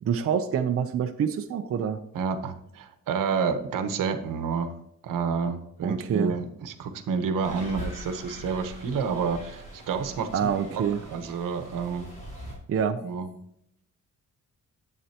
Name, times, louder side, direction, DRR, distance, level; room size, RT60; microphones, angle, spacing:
voice 1, 0.0-2.0 5.8-6.3 10.3-11.0 12.7-13.0, right 7 dB, 45° right, 6 dB, 0.6 m, -26 dB
voice 2, 2.1-4.7 5.0-10.8 11.1-12.1 13.0-13.3, right 5 dB, 85° right, 9 dB, 1.0 m, -29 dB
sound 1, 7.4-12.5, equal, 25° left, 3.9 m, -42 dB
11.0 x 8.2 x 2.9 m, 0.77 s
wide cardioid pair, 160°, 31 cm